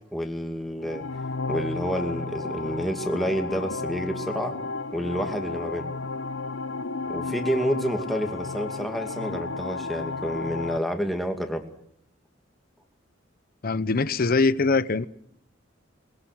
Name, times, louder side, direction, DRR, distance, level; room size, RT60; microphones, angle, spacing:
voice 1, 0.1-1.0 1.5-4.6 4.9-5.9 7.1-11.6, equal, ahead, 2.4 m, -29 dB
sound 1, 0.8-10.8, left 3 dB, 80° left, 0.9 m, -33 dB
voice 2, 13.6-15.0, left 3 dB, 50° left, 0.8 m, -22 dB
22.0 x 21.0 x 6.3 m
head